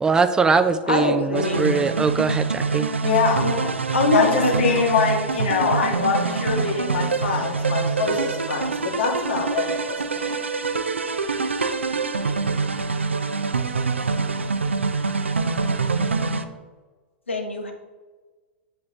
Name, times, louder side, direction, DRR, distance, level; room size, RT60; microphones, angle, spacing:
voice 1, 0.0-2.9, right 4 dB, 10° right, 11 dB, 0.4 m, -21 dB
voice 2, 0.9-1.7 3.4-4.6 5.6-5.9 17.3-17.7, left 2 dB, 85° left, 3 dB, 1.1 m, -23 dB
sound 1, 1.3-16.4, right 4 dB, 85° right, 0.5 m, -25 dB
voice 3, 3.0-3.5 4.1-10.4, left 5 dB, 65° left, 0 dB, 1.7 m, -24 dB
8.2 x 5.0 x 3.2 m, 1.3 s
figure-of-eight pair, 100°, 6 cm